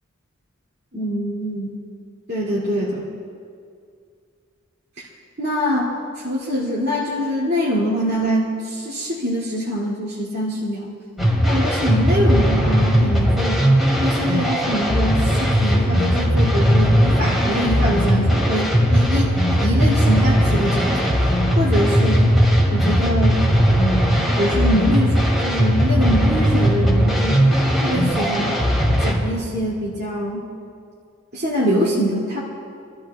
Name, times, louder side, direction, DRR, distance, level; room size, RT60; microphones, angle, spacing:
voice 1, 0.9-1.8 2.3-3.1 5.0-5.1 5.4-10.9 11.4-13.7 14.0-22.3 22.7-23.4 23.8-28.6 29.0-30.4 31.3-32.4, equal, 50° right, -6 dB, 2.4 m, -24 dB
sound 1, 11.2-29.1, equal, ahead, 2.3 m, -18 dB
27.5 x 13.5 x 2.3 m, 2.3 s
head